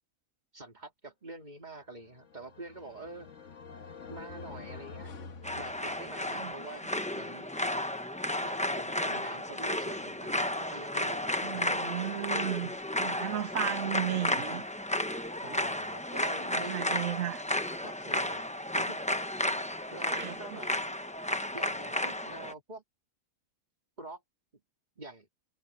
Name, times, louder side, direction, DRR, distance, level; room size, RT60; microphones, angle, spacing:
voice 1, 0.5-3.3 4.1-5.1 5.5-6.8 7.1-7.6 8.4-12.0 12.6-12.8 15.4-17.0 17.8-18.5 18.8-19.0 19.9-20.7 21.5-22.8 24.0-24.2 25.0-25.3, right 2 dB, 30° right, 2.7 m, -46 dB
sound 1, 2.0-6.4, left 5 dB, 60° left, 1.7 m, -47 dB
sound 2, 5.4-22.5, left 1 dB, 5° left, 0.7 m, -33 dB
voice 2, 11.4-12.7 13.0-14.6 16.5-17.4 20.1-20.6, right 13 dB, 70° right, 1.0 m, -35 dB
omnidirectional pair, 1.5 m